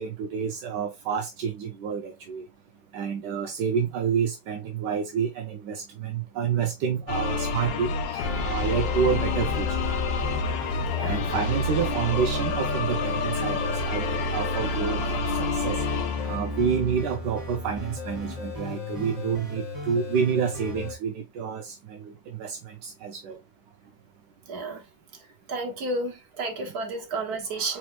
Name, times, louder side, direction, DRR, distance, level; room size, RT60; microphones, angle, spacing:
voice 1, 0.0-2.4 2.9-9.7 11.0-15.8 16.2-23.4, right 7 dB, 75° right, 1.2 m, -29 dB
sound 1, 7.1-17.0, left 4 dB, 90° left, 1.4 m, -28 dB
sound 2, 8.2-20.9, equal, 10° right, 2.0 m, -35 dB
voice 2, 10.7-11.2 24.5-24.8 25.5-27.8, right 2 dB, 60° right, 1.7 m, -32 dB
4.4 x 4.3 x 2.2 m
omnidirectional pair, 2.0 m